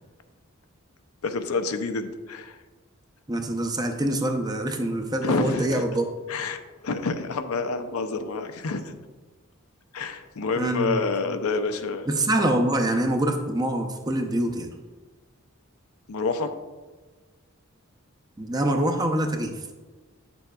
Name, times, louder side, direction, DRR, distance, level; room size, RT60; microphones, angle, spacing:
voice 1, 1.2-2.6 5.2-5.8 6.3-8.9 9.9-12.1 16.1-16.5, left 4 dB, 85° left, 8 dB, 0.6 m, -28 dB
voice 2, 3.3-6.1 10.6-11.0 12.1-14.7 18.4-19.6, right 1 dB, 20° right, 4 dB, 0.5 m, -25 dB
8.9 x 6.9 x 2.3 m, 1.3 s
head